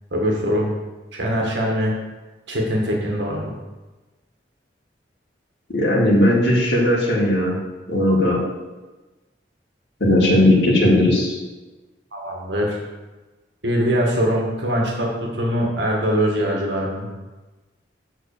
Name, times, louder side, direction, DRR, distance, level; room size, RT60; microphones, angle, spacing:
voice 1, 0.1-0.7 1.1-1.9 2.5-3.5 12.1-12.8 13.6-17.1, equal, 80° right, -2 dB, 1.9 m, -22 dB
voice 2, 5.7-7.6 7.9-8.4 10.0-11.4, left 1 dB, 65° left, -7 dB, 2.0 m, -17 dB
8.2 x 3.9 x 6.7 m, 1.2 s
head